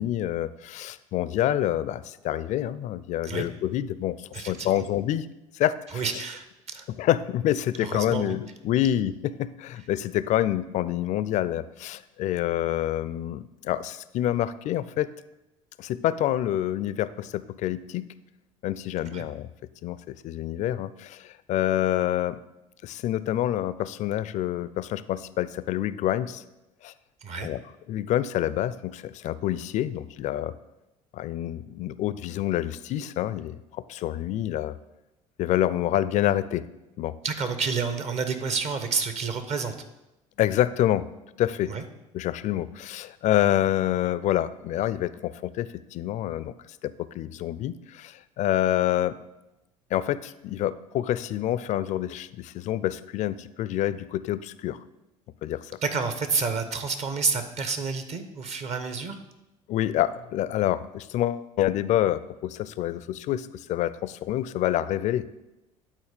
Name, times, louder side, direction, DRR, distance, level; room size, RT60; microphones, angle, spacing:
voice 1, 0.0-5.3 5.5-6.0 6.9-15.1 15.8-18.1 18.6-19.5 19.8-22.4 22.8-26.4 26.8-26.9 27.4-27.6 27.9-30.5 31.1-33.6 33.9-34.8 35.4-36.7 37.0-37.2 40.4-41.1 41.4-41.7 42.1-46.5 46.8-49.2 49.9-54.8 55.4-55.8 59.7-65.3, left 12 dB, 50° left, 16 dB, 0.4 m, -27 dB
voice 2, 4.3-4.8 5.9-6.8 7.8-8.3 19.1-19.3 27.2-27.5 37.2-39.7 41.7-41.8 55.8-59.2, right 5 dB, 45° right, 9 dB, 1.0 m, -29 dB
9.3 x 4.2 x 5.0 m, 0.95 s
hypercardioid pair, 65°, 16 cm